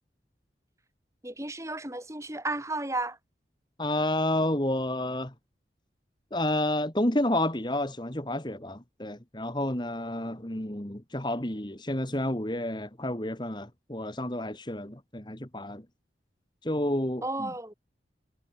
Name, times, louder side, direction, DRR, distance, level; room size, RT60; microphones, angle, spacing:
voice 1, 1.2-3.2 17.2-17.7, right 2 dB, 15° right, 5.8 m, -33 dB
voice 2, 3.8-5.3 6.3-15.8 16.6-17.5, left 1 dB, 25° left, 2.3 m, -30 dB
head